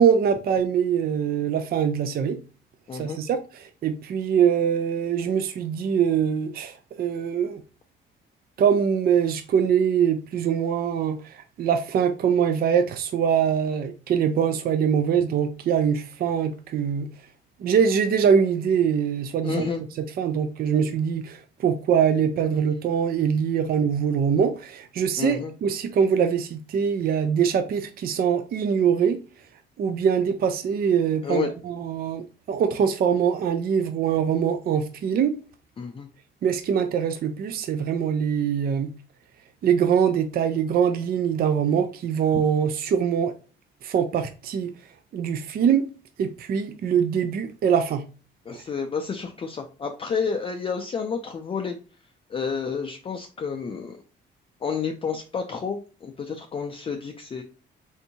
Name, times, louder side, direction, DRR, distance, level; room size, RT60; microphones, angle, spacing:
voice 1, 0.0-2.4 3.0-7.6 8.6-17.1 17.6-19.6 20.2-29.2 29.8-35.3 36.4-38.9 39.6-43.3 43.8-44.7 45.1-45.8 46.2-48.0, right 7 dB, 50° right, 0.4 m, -23 dB
voice 2, 2.9-3.2 19.4-19.8 25.2-25.5 31.2-31.5 35.8-36.1 48.5-51.8 52.3-54.0 54.6-57.4, left 5 dB, 30° left, 0.4 m, -30 dB
3.5 x 2.7 x 2.6 m
cardioid pair, 90°, 20 cm